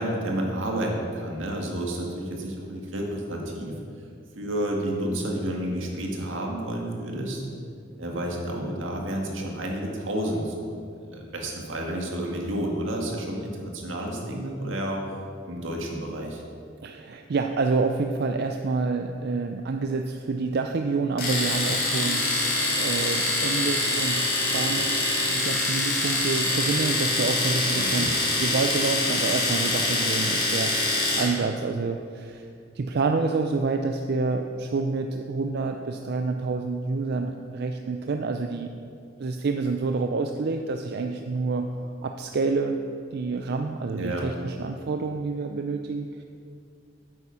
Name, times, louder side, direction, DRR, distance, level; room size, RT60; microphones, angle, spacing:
voice 1, 0.0-3.8 4.4-7.4 8.0-15.0 15.5-16.4 27.8-28.1 43.9-44.3, right 1 dB, 80° right, 0 dB, 1.8 m, -30 dB
voice 2, 16.8-25.0 25.3-32.5 32.8-38.7 39.2-41.7 42.0-42.8 43.1-46.2, right 4 dB, 55° right, 5 dB, 0.4 m, -28 dB
Domestic sounds home sounds, 21.2-31.4, left 2 dB, 50° left, 2.9 m, -25 dB
8.9 x 8.3 x 5.6 m, 2.4 s
head